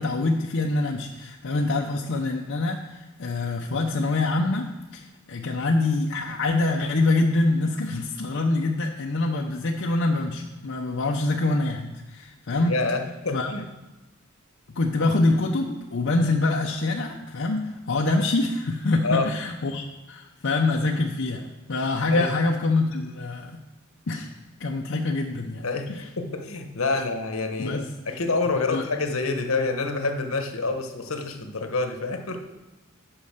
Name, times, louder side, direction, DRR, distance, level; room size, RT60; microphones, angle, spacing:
voice 1, 0.0-12.8 13.3-13.5 14.7-23.6 24.1-24.3 24.6-26.1 27.6-27.9 28.7-28.8, left 2 dB, 60° left, 1 dB, 0.6 m, -25 dB
voice 2, 12.7-13.6 19.0-19.3 22.1-22.3 25.6-25.9 26.2-32.4, left 3 dB, 75° left, 6 dB, 1.1 m, -27 dB
8.8 x 5.4 x 6.6 m, 1.1 s
head